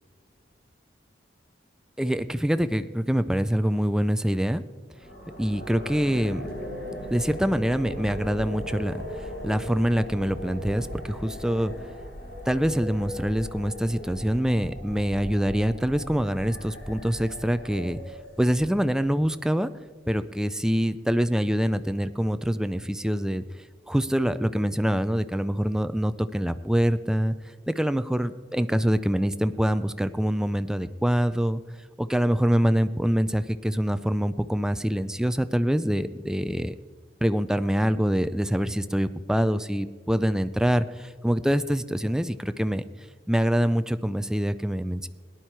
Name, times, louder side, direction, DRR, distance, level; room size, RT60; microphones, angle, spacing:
voice 1, 2.0-4.6 5.4-6.5 7.1-11.7 12.5-18.0 18.4-19.7 20.1-23.4 23.9-27.4 27.7-31.6 32.0-36.7 37.2-42.8 43.3-45.1, equal, 5° right, 11 dB, 0.4 m, -25 dB
sound 1, 4.9-19.0, equal, 65° left, 4.7 m, -38 dB
18.5 x 10.0 x 4.5 m, 1.5 s
head